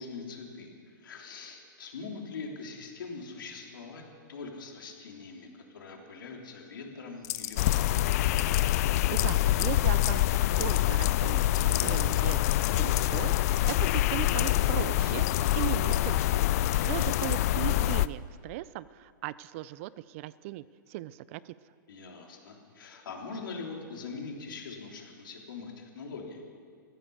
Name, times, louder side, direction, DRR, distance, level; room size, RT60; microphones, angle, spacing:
voice 1, 0.0-4.0 4.3-7.9 17.0-17.3 21.9-26.4, left 4 dB, 75° left, 1 dB, 3.3 m, -42 dB
sound 1, 7.2-14.6 15.3-17.6, left 16 dB, 30° left, 0.7 m, -37 dB
sound 2, 7.6-18.1, left 14 dB, 45° left, 0.4 m, -26 dB
voice 2, 8.8-11.5 11.8-13.3 13.7-15.2 15.5-16.5 16.8-21.5, right 15 dB, 40° right, 18 dB, 0.4 m, -38 dB
14.5 x 13.5 x 7.1 m, 2.1 s
hypercardioid pair, 150°, 11 cm